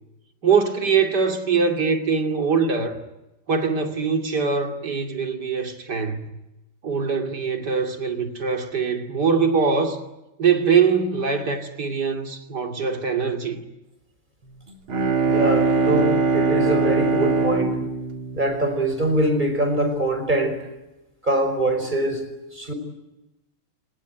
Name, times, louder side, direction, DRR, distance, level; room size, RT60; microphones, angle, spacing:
voice 1, 0.4-3.0 3.5-6.2 6.8-10.0 10.4-13.6, right 5 dB, 50° right, 3.2 m, -22 dB
Bowed string instrument, 14.7-19.4, right 4 dB, 70° right, 2.8 m, -22 dB
voice 2, 15.3-17.8 18.3-20.6 21.2-22.2 22.5-22.7, right 1 dB, 20° right, 5.2 m, -23 dB
28.5 x 19.0 x 9.4 m
omnidirectional pair, 2.4 m